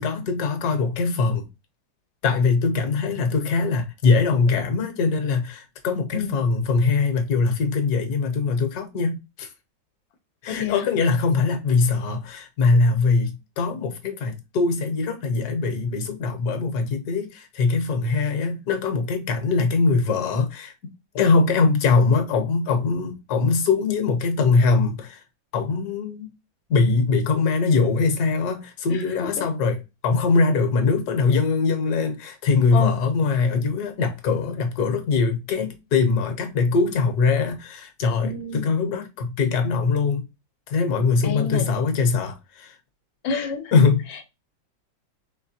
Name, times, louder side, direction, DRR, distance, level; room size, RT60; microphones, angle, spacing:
voice 1, 0.0-1.4 2.2-9.5 10.4-25.2 25.5-26.3 26.7-29.8 30.0-40.3 40.7-42.8 43.7-44.1, left 4 dB, 60° left, 1.4 m, -22 dB
voice 2, 10.5-10.9 28.9-29.7 32.7-33.0 38.2-38.7 41.2-41.7 43.2-43.7 44.1-44.2, left 6 dB, 85° left, 1.4 m, -30 dB
4.4 x 3.2 x 2.8 m
omnidirectional pair, 2.1 m